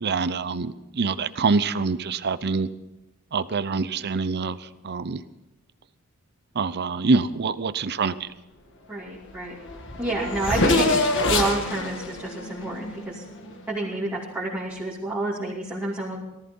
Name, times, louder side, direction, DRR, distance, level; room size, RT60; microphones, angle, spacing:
voice 1, 0.0-2.7 3.3-4.6 4.8-5.2 6.5-8.3, right 4 dB, 50° right, 13 dB, 0.7 m, -25 dB
voice 2, 8.9-9.5 10.0-13.2 13.7-16.2, right 2 dB, 10° right, -7 dB, 2.7 m, -29 dB
Race car auto racing / Accelerating revving vroom, 9.3-9.4 9.6-13.6, left 2 dB, 55° left, 1.8 m, -25 dB
18.0 x 14.0 x 5.5 m, 0.95 s
head